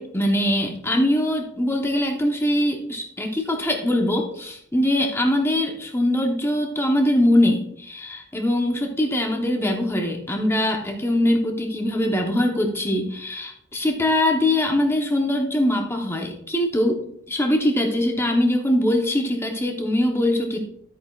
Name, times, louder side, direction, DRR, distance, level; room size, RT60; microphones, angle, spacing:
voice 1, 0.0-17.0 17.3-20.6, left 1 dB, 10° left, 2 dB, 0.9 m, -22 dB
12.0 x 8.8 x 2.4 m, 0.71 s
head